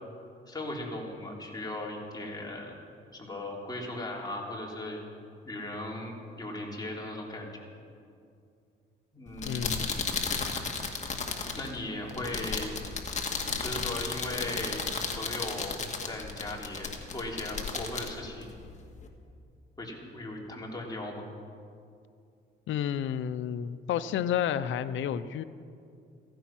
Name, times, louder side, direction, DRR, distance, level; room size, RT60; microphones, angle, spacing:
voice 1, 0.5-2.7 3.1-5.0 5.5-7.6 9.1-10.0 11.5-12.7 13.6-14.8 15.1-15.8 16.1-18.5 19.8-21.2, left 1 dB, 20° left, -2 dB, 3.5 m, -38 dB
sound 1, 9.3-19.1, left 4 dB, 35° left, 2.0 m, -34 dB
voice 2, 9.4-9.9 22.7-25.4, left 9 dB, 75° left, 12 dB, 0.6 m, -31 dB
15.5 x 15.0 x 6.1 m, 2.4 s
cardioid pair, 90°, 20 cm